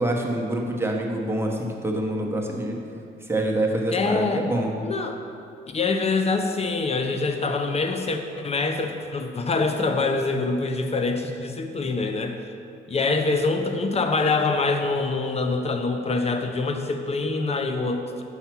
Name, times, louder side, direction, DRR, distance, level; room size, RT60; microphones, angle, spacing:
voice 1, 0.0-2.8 3.2-4.7, right 1 dB, 10° right, 0 dB, 1.0 m, -26 dB
voice 2, 3.9-4.5 4.8-5.2 5.7-12.4 12.9-18.2, left 3 dB, 30° left, 6 dB, 0.7 m, -25 dB
5.7 x 5.6 x 5.9 m, 2.5 s
cardioid pair, 90°, 20 cm